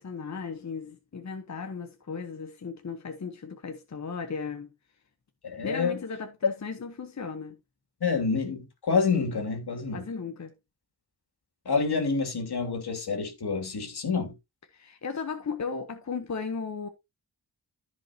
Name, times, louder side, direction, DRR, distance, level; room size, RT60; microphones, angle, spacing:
voice 1, 0.0-4.7 5.6-7.6 9.9-10.5 14.7-16.9, left 5 dB, 45° left, 1.1 m, -36 dB
voice 2, 5.4-6.0 8.0-10.0 11.7-14.3, left 4 dB, 80° left, 2.6 m, -28 dB
14.0 x 5.2 x 2.8 m
wide cardioid pair, 125°, 38 cm